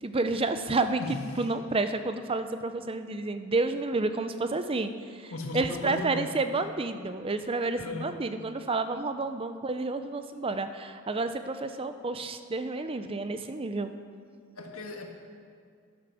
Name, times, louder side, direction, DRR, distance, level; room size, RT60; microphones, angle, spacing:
voice 1, 0.0-1.0 1.4-4.9 5.2-13.9, right 3 dB, 25° right, 9 dB, 0.5 m, -30 dB
voice 2, 1.0-1.5 5.3-6.4 7.7-8.2 13.4-13.5 14.5-15.1, left 2 dB, 85° left, 2 dB, 1.7 m, -37 dB
12.0 x 11.0 x 6.2 m, 2.2 s
head